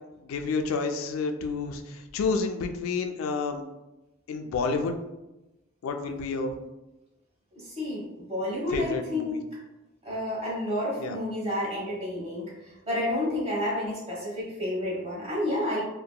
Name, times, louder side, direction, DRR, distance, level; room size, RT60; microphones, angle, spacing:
voice 1, 0.2-3.6 4.3-4.9 5.8-6.5 8.7-9.4 11.0-11.2, left 4 dB, 80° left, 6 dB, 0.3 m, -29 dB
voice 2, 7.5-9.4 10.0-15.8, left 1 dB, 30° right, -7 dB, 0.9 m, -30 dB
2.7 x 2.1 x 2.2 m, 1.0 s
head